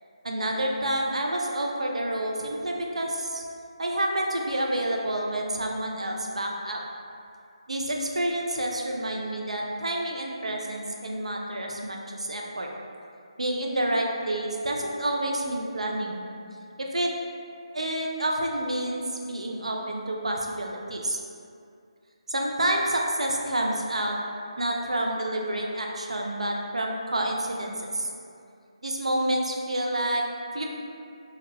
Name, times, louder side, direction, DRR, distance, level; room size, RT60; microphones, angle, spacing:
voice 1, 0.2-3.4 3.8-6.8 7.7-12.7 13.4-16.2 16.8-17.1 17.7-21.2 22.3-24.2 24.6-28.1 28.8-30.2 30.5-30.7, right 1 dB, 85° right, 0 dB, 0.4 m, -28 dB
2.3 x 2.1 x 3.2 m, 2.4 s
figure-of-eight pair, 155°, 3 cm